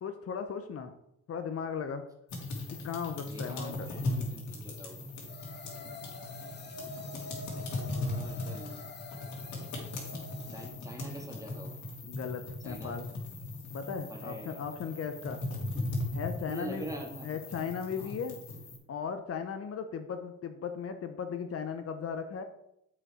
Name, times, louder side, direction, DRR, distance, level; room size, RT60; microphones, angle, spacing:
voice 1, 0.0-0.9 1.3-2.1 2.8-3.9 12.0-13.1 13.7-15.4 16.1-16.9 17.2-18.4 18.9-22.4, left 6 dB, 50° left, 7 dB, 0.7 m, -37 dB
sound 1, 2.3-18.8, left 2 dB, 70° left, 2.5 m, -38 dB
voice 2, 3.2-5.1 7.9-8.8 10.5-11.8 12.6-13.1 14.1-14.6 15.7-15.9 16.5-17.4 17.9-18.1, right 1 dB, 10° right, 1 dB, 1.9 m, -44 dB
sound 2, 5.3-10.7, left 3 dB, 35° left, 1.1 m, -47 dB
7.3 x 5.2 x 4.9 m, 0.81 s
cardioid pair, 90°, 30 cm